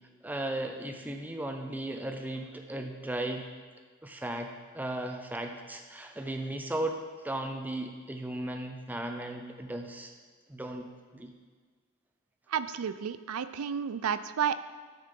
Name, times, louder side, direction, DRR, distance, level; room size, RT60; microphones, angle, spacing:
voice 1, 0.2-3.5 4.0-10.1 10.5-10.9 11.1-11.3, right 1 dB, 10° right, 4 dB, 0.5 m, -36 dB
voice 2, 12.5-14.6, right 7 dB, 90° right, 13 dB, 0.4 m, -31 dB
12.5 x 6.6 x 3.8 m, 1.5 s
head